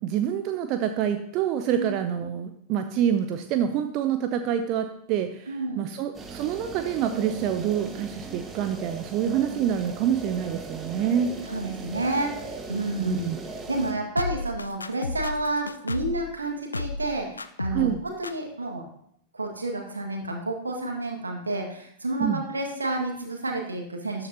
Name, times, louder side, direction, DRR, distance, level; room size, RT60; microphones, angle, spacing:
voice 1, 0.0-11.3 13.0-13.4 17.7-18.0 22.2-22.4, right 9 dB, 40° right, 8 dB, 0.6 m, -27 dB
voice 2, 5.5-5.9 11.5-13.3 13.7-18.8 19.3-24.3, right 2 dB, 80° right, 2 dB, 1.8 m, -30 dB
sound 1, 6.1-13.9, right 3 dB, 20° right, 1.4 m, -39 dB
sound 2, 14.2-16.2 16.7-17.1 17.4-17.9 18.2-18.3, left 3 dB, 80° left, 0.4 m, -32 dB
13.0 x 9.7 x 2.8 m, 0.68 s
figure-of-eight pair, 90°, 0 cm